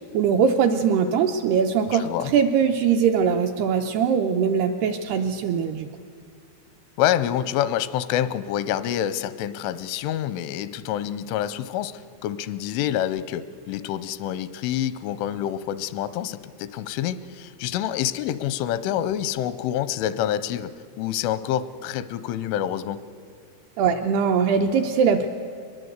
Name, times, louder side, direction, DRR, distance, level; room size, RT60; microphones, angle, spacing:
voice 1, 0.1-5.9 23.8-25.3, right 6 dB, 80° right, 4 dB, 2.4 m, -21 dB
voice 2, 1.9-2.3 7.0-23.0, left 11 dB, 85° left, 15 dB, 3.2 m, -27 dB
22.0 x 20.0 x 8.1 m, 2.5 s
omnidirectional pair, 5.4 m